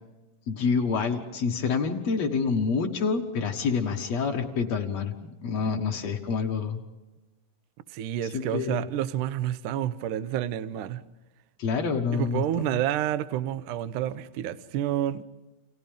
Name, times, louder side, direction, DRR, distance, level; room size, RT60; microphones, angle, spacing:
voice 1, 0.5-5.2 5.4-6.8 8.3-8.9 11.6-12.8, left 5 dB, 55° left, 2.1 m, -27 dB
voice 2, 7.9-11.0 12.1-15.2, right 11 dB, 75° right, 1.9 m, -29 dB
29.5 x 29.0 x 3.6 m
omnidirectional pair, 4.8 m